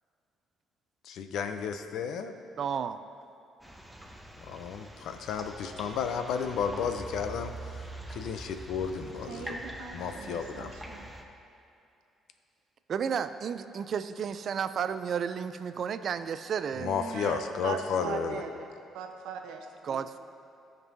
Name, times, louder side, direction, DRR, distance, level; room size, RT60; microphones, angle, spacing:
voice 1, 1.1-2.3 4.5-7.5 8.1-9.6 9.9-10.7 16.8-18.4, left 6 dB, 70° left, 8 dB, 0.5 m, -32 dB
voice 2, 2.6-3.0 12.9-16.9 19.8-20.2, right 7 dB, 50° right, 11 dB, 0.4 m, -32 dB
sound 1, 3.6-11.2, right 1 dB, ahead, 0.6 m, -44 dB
voice 3, 9.2-11.1 16.8-18.7 18.9-20.0, right 6 dB, 90° right, 4 dB, 0.7 m, -40 dB
15.5 x 5.3 x 2.7 m, 2.7 s
cardioid pair, 105°, 0 cm